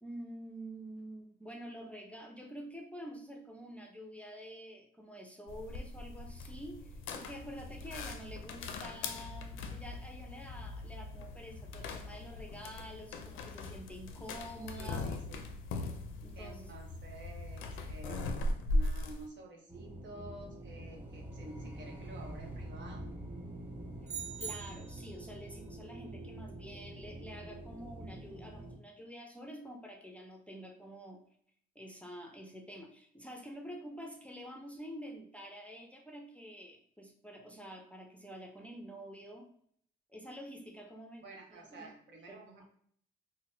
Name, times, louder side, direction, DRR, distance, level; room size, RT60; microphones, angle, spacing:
voice 1, 0.0-15.0 16.2-16.7 24.4-31.2 31.8-39.5 40.1-41.2 41.5-41.9 42.3-42.6, equal, 5° left, 1 dB, 0.5 m, -48 dB
sound 1, 5.5-19.3, left 2 dB, 85° left, 0.4 m, -39 dB
voice 2, 14.7-15.4 16.4-23.2 41.2-42.7, right 1 dB, 65° right, 1 dB, 0.9 m, -51 dB
sound 2, 19.7-28.8, right 1 dB, 10° right, 0.9 m, -46 dB
sound 3, 24.1-25.2, right 7 dB, 35° right, 0.6 m, -42 dB
3.8 x 2.1 x 2.6 m, 0.64 s
cardioid pair, 90°, 20 cm